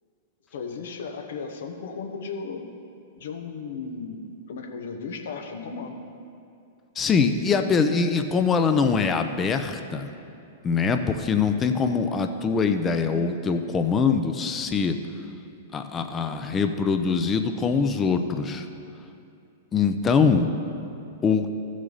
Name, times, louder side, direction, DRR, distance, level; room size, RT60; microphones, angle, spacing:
voice 1, 0.5-2.7 3.2-6.0, left 5 dB, 70° left, 4 dB, 1.1 m, -35 dB
voice 2, 7.0-10.1 10.6-15.0 15.7-18.6 19.7-20.5 21.2-21.5, left 5 dB, 25° left, 7 dB, 0.6 m, -23 dB
14.5 x 6.3 x 4.0 m, 2.5 s
hypercardioid pair, 110°, 0 cm